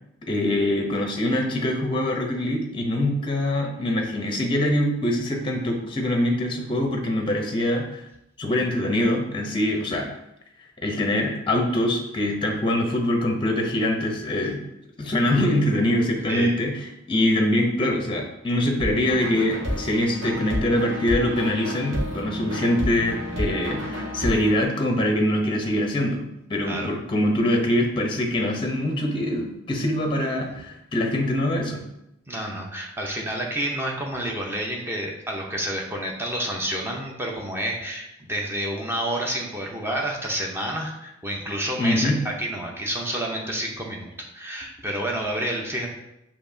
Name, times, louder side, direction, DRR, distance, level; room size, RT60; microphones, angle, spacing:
voice 1, 0.3-8.0 8.4-10.1 10.8-14.6 15.0-31.8 41.8-42.2, left 1 dB, 25° left, 2 dB, 0.6 m, -24 dB
sound 1, 18.8-24.6, equal, 75° right, 1.3 m, -30 dB
voice 2, 32.3-45.9, right 1 dB, 10° right, -1 dB, 0.7 m, -29 dB
6.9 x 2.9 x 2.6 m, 0.85 s
head